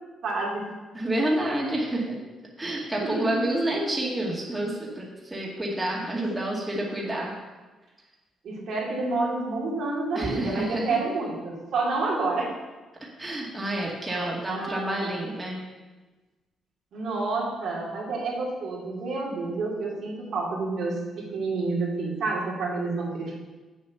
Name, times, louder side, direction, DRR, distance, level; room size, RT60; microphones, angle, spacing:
voice 1, 0.2-0.7 3.0-3.9 8.4-12.5 14.0-15.1 16.9-23.3, right 3 dB, 70° right, -4 dB, 2.6 m, -29 dB
voice 2, 0.9-2.2 2.6-7.3 10.1-10.9 13.2-15.6, right 1 dB, 15° right, -4 dB, 2.3 m, -29 dB
7.6 x 7.4 x 5.8 m, 1.2 s
cardioid pair, 90°, 0 cm